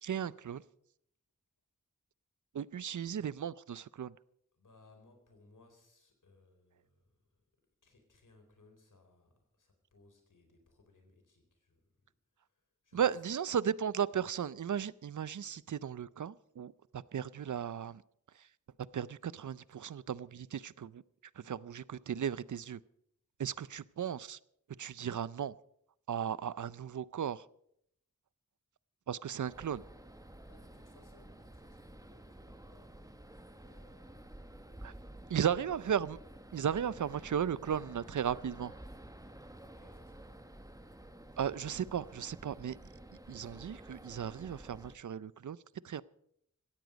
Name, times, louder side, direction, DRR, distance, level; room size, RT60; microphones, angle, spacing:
voice 1, 0.0-0.6 2.5-4.1 12.9-18.0 18.9-21.0 21.4-22.8 23.4-24.4 24.8-25.5 26.1-27.4 29.1-29.8 34.8-34.9 35.3-36.2 36.5-38.7 41.4-42.8 43.3-45.6 45.8-46.0, right 8 dB, 75° right, 0.6 m, -35 dB
voice 2, 4.5-7.4 7.8-12.0 12.3-13.2 23.4-23.7 30.4-33.1 33.6-34.6 39.5-40.3, left 2 dB, 80° left, 4.3 m, -64 dB
sound 1, 29.5-45.0, right 1 dB, 10° right, 1.4 m, -52 dB
17.0 x 14.5 x 5.2 m
wide cardioid pair, 70°, 31 cm